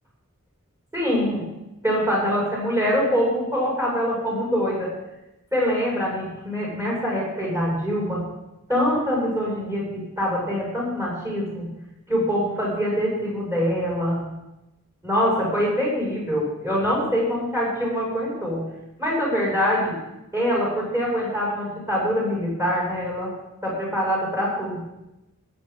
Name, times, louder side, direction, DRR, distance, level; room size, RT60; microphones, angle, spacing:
voice 1, 0.9-1.4 1.8-4.9 5.5-8.2 8.7-11.7 12.1-14.2 15.0-18.6 19.0-20.0 20.3-23.3 23.6-24.9, equal, 15° right, -5 dB, 6.3 m, -24 dB
23.5 x 9.3 x 3.9 m, 0.94 s
head